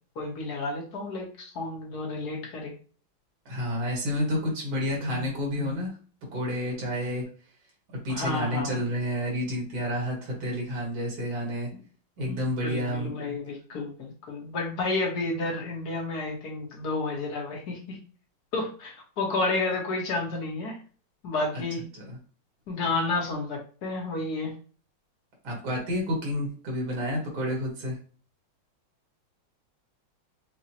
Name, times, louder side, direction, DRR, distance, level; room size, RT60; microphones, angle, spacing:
voice 1, 0.1-2.7 8.1-8.8 12.2-18.0 18.5-20.8 21.2-21.8 22.7-24.5, left 3 dB, 55° left, 0 dB, 1.4 m, -31 dB
voice 2, 3.5-5.9 6.3-7.3 7.9-11.7 12.2-13.4 21.5-21.6 21.9-22.2 25.4-28.0, equal, 75° right, -2 dB, 2.3 m, -30 dB
6.2 x 2.1 x 2.9 m, 0.40 s
omnidirectional pair, 2.2 m